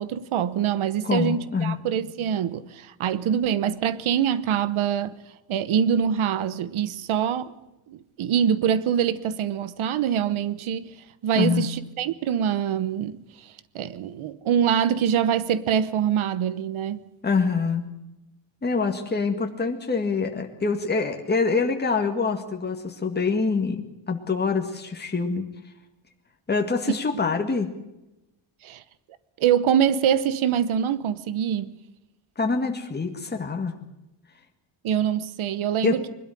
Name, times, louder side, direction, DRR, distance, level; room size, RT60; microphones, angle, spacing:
voice 1, 0.0-5.1 5.5-7.5 7.9-10.9 11.2-17.0 26.9-27.0 28.6-28.8 29.4-31.7 34.8-36.1, right 8 dB, 80° right, 1.1 m, -24 dB
voice 2, 1.0-1.8 11.3-11.7 17.2-17.9 18.6-25.5 26.5-27.7 32.4-33.8 35.8-35.9, left 4 dB, 20° left, 1.9 m, -25 dB
22.0 x 12.5 x 9.9 m
wide cardioid pair, 145°, 48 cm